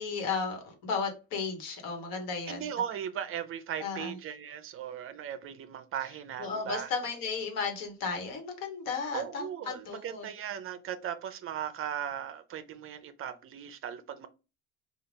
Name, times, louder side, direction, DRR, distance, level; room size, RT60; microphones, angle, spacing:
voice 1, 0.0-2.8 3.8-4.1 6.4-10.3, left 5 dB, 75° left, 1.3 m, -34 dB
voice 2, 2.5-6.9 9.1-14.3, right 9 dB, 40° right, 0.5 m, -37 dB
3.9 x 2.4 x 3.3 m
supercardioid pair, 100°, 33 cm